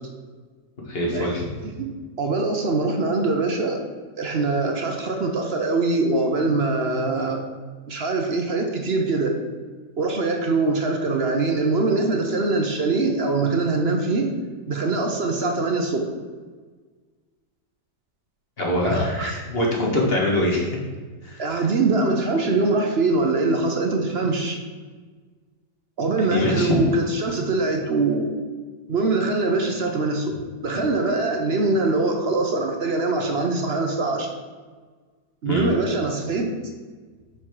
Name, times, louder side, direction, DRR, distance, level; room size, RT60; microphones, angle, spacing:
voice 1, 0.9-1.5 18.6-20.8 21.2-21.4 26.3-26.8 35.5-35.7, left 1 dB, 35° left, -2 dB, 1.6 m, -23 dB
voice 2, 2.2-3.8 4.2-7.4 7.9-9.3 10.0-14.3 14.7-16.0 18.8-19.3 21.4-24.6 26.0-28.3 28.9-30.4 30.6-34.3 35.4-36.5, right 3 dB, 50° right, 2 dB, 0.8 m, -23 dB
6.2 x 5.8 x 4.6 m, 1.5 s
omnidirectional pair, 1.8 m